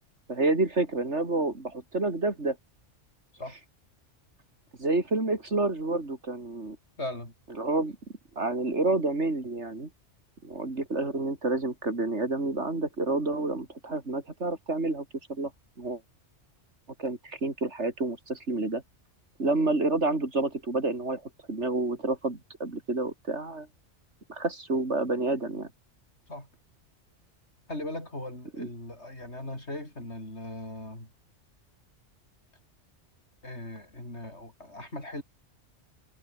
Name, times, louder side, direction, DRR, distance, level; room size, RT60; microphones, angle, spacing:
voice 1, 0.3-2.6 4.8-6.8 7.6-8.0 8.4-9.9 10.4-15.5 15.8-16.0 17.0-18.8 19.4-21.2 21.5-23.7 24.3-25.7 28.6-28.7, right 2 dB, 70° right, 4.1 m, -29 dB
voice 2, 7.0-7.3 26.3-26.5 27.7-31.1 33.4-35.2, left 1 dB, 65° left, 7.6 m, -38 dB
omnidirectional pair, 1.2 m